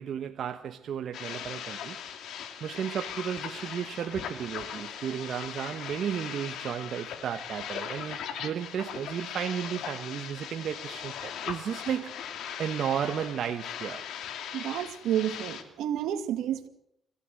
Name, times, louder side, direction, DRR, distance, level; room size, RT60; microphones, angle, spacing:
voice 1, 0.0-2.0 2.6-12.1 12.6-14.1, right 9 dB, 65° right, 1.2 m, -33 dB
sound 1, 1.1-15.6, left 8 dB, 80° left, 2.8 m, -39 dB
voice 2, 14.5-16.7, right 10 dB, 85° right, 2.2 m, -30 dB
26.5 x 16.0 x 7.9 m
cardioid pair, 90°, 0 cm